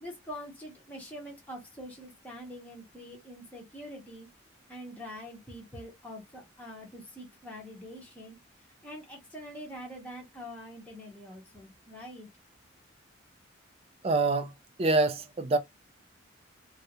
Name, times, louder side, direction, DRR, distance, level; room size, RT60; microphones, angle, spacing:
voice 1, 0.0-4.3 4.7-8.4 8.8-12.3, equal, 5° left, 0.8 m, -44 dB
voice 2, 14.0-14.5 14.8-15.6, right 2 dB, 30° right, 0.4 m, -25 dB
2.4 x 2.1 x 2.7 m
head